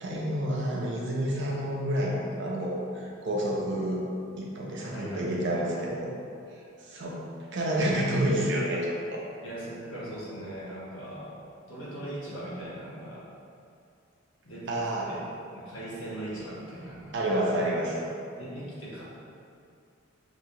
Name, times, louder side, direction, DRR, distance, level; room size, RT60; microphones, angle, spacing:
voice 1, 0.0-4.0 4.4-6.1 6.9-7.2 7.5-9.2 14.7-15.1 17.1-18.1, right 1 dB, 60° right, -3 dB, 0.7 m, -29 dB
voice 2, 4.9-5.5 9.4-11.4 11.7-13.3 14.4-14.8 15.0-15.2 15.5-17.2 18.4-19.0, right 1 dB, 75° left, -8 dB, 1.4 m, -39 dB
5.9 x 2.9 x 2.9 m, 2.5 s
head